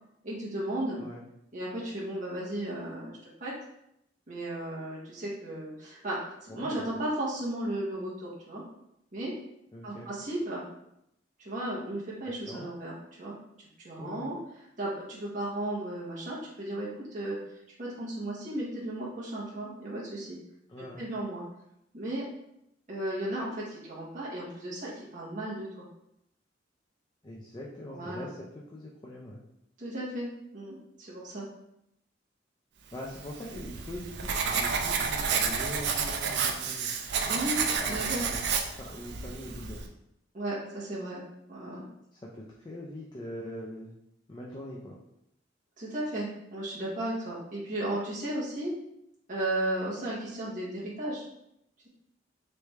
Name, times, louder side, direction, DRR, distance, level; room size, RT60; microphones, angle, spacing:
voice 1, 0.2-1.0 1.5-3.5 4.3-8.6 9.1-9.3 9.8-10.6 11.4-13.3 13.8-14.4 14.8-17.4 17.8-20.4 20.8-21.4 21.9-22.2 22.9-25.8 27.9-28.3 29.8-30.3 30.5-31.5 37.3-38.3 40.3-41.2 41.5-41.8 45.8-48.7 49.3-51.2, right 1 dB, 45° right, -7 dB, 1.1 m, -35 dB
voice 2, 6.5-6.8 9.7-10.1 12.2-12.7 14.0-14.3 20.7-21.1 27.2-29.4 32.9-36.9 37.7-38.4 38.8-39.9 42.1-43.9 44.3-45.0, left 1 dB, 25° left, -4 dB, 0.5 m, -42 dB
Writing, 33.1-39.9, right 5 dB, 65° right, 0.4 m, -30 dB
3.4 x 3.3 x 3.1 m, 0.80 s
head